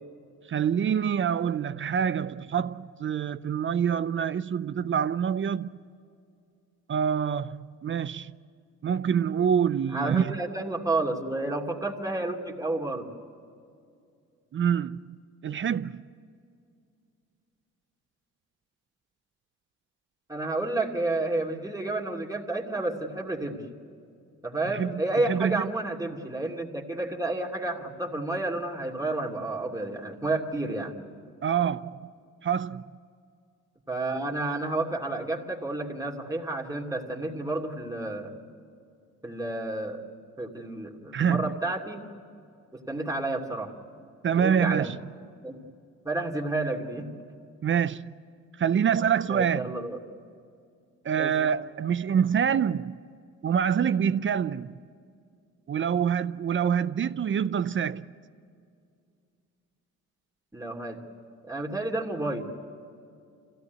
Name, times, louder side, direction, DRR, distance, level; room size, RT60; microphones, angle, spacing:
voice 1, 0.5-5.8 6.9-8.3 8.8-10.4 14.5-15.0 15.4-16.0 24.7-25.0 25.3-25.7 31.4-32.1 32.4-32.8 41.1-41.5 44.2-45.0 47.6-48.1 48.6-49.8 51.0-53.0 53.4-54.8 55.7-58.1, right 8 dB, 40° right, 0.6 m, -26 dB
voice 2, 9.9-13.1 20.3-23.6 24.4-30.9 33.9-38.3 39.2-40.0 40.4-42.1 42.7-43.7 44.4-44.9 45.4-45.6 46.0-47.1 49.3-50.0 51.2-51.3 60.5-61.0 61.5-62.5, right 2 dB, 10° right, 2.8 m, -30 dB
25.5 x 16.5 x 9.4 m
cardioid pair, 90°, 30 cm